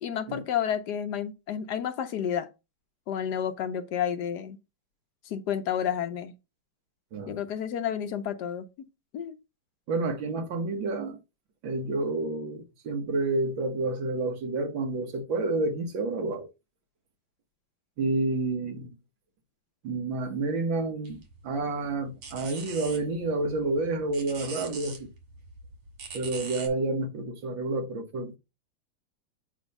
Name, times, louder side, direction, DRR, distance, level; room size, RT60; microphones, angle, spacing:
voice 1, 0.0-2.5 3.1-4.6 5.2-6.3 7.3-8.6 9.1-9.4, left 9 dB, 60° left, 1.2 m, -30 dB
voice 2, 9.9-11.2 11.6-16.5 18.0-18.9 19.8-25.1 26.1-28.4, right 2 dB, 65° right, 1.9 m, -29 dB
sound 1, 21.1-26.7, right 4 dB, 85° right, 2.7 m, -43 dB
8.1 x 2.8 x 5.3 m
omnidirectional pair, 2.3 m